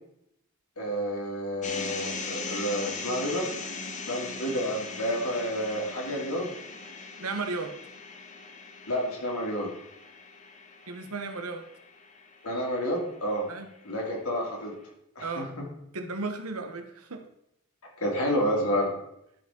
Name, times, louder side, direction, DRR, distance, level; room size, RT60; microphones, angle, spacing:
voice 1, 0.8-3.5 4.1-6.5 7.0-7.1 8.9-9.7 12.4-13.5 13.8-14.7 15.2-15.6 18.0-18.9, equal, 80° left, -2 dB, 2.6 m, -30 dB
sound 1, 1.6-13.8, left 4 dB, 35° left, 0.9 m, -40 dB
voice 2, 7.2-7.8 10.9-11.6 13.5-13.7 15.2-15.5 15.9-17.2, right 3 dB, 85° right, 7 dB, 1.0 m, -34 dB
12.0 x 5.1 x 3.8 m, 0.78 s
head